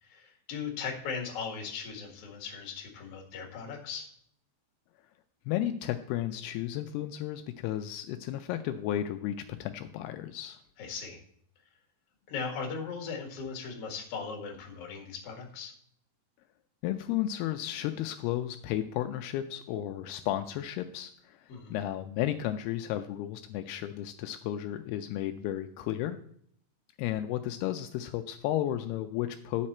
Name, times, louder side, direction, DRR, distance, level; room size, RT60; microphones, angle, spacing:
voice 1, 0.0-4.1 10.8-11.2 12.3-15.7 21.5-21.8, left 5 dB, 45° left, 1 dB, 2.4 m, -38 dB
voice 2, 5.5-10.6 16.8-26.2 27.0-29.7, left 12 dB, 85° left, 7 dB, 2.5 m, -33 dB
10.5 x 7.6 x 4.3 m, 0.64 s
omnidirectional pair, 4.7 m